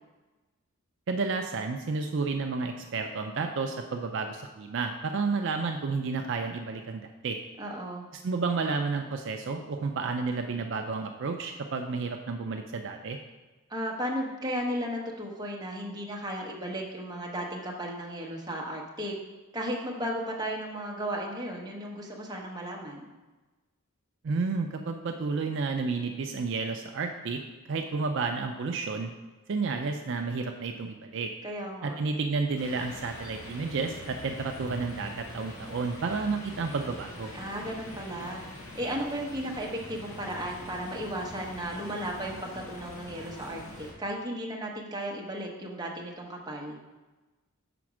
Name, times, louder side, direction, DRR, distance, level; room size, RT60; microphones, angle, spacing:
voice 1, 1.1-7.4 8.2-13.2 24.2-27.4 27.7-29.1 29.5-31.3 31.8-37.3, right 4 dB, 55° right, 4 dB, 0.4 m, -31 dB
voice 2, 7.6-8.1 13.7-19.1 19.5-23.1 31.4-32.0 37.3-38.4 38.7-46.8, equal, 20° right, -2 dB, 0.9 m, -35 dB
sound 1, 32.5-43.9, left 1 dB, 70° left, 1.6 m, -44 dB
6.0 x 4.2 x 6.1 m, 1.2 s
head